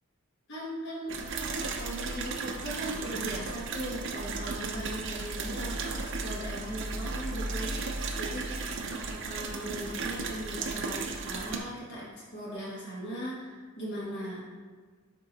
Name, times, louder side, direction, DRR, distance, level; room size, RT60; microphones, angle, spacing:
voice 1, 0.5-8.5 8.9-14.4, equal, 55° left, -7 dB, 1.4 m, -39 dB
sound 1, 1.1-11.6, right 3 dB, 60° right, 0.6 m, -35 dB
8.4 x 3.0 x 4.0 m, 1.5 s
head